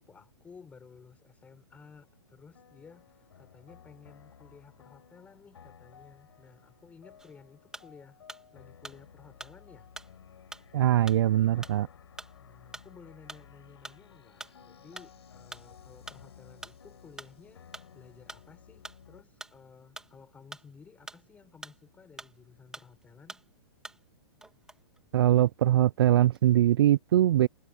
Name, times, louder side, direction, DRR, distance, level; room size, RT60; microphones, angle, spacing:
voice 1, 0.0-8.2 8.5-9.9 12.4-23.4, left 5 dB, 10° left, 5.4 m, -55 dB
sound 1, 1.7-2.2 2.5-19.2, left 8 dB, 85° left, 5.5 m, -55 dB
sound 2, 7.2-8.5 8.8-22.5 22.7-24.2 24.4-25.6 26.1-26.6, right 2 dB, 5° right, 2.3 m, -47 dB
voice 2, 10.7-11.9 25.1-27.5, right 12 dB, 65° right, 0.4 m, -22 dB
hypercardioid pair, 150°, 13 cm